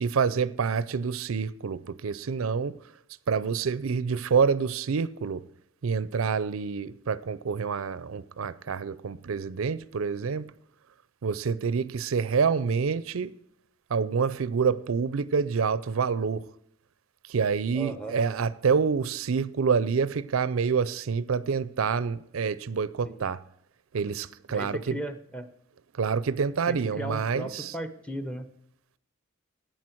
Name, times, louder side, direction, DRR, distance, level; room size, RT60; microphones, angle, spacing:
voice 1, 0.0-2.8 3.3-5.4 5.8-10.5 11.2-13.3 13.9-16.4 17.3-23.4 23.9-25.0 26.0-27.7, right 5 dB, 85° right, 0.5 m, -27 dB
voice 2, 17.7-18.2 23.1-23.2 24.5-25.5 26.7-28.5, right 1 dB, 5° left, 0.8 m, -36 dB
13.5 x 9.0 x 4.5 m
head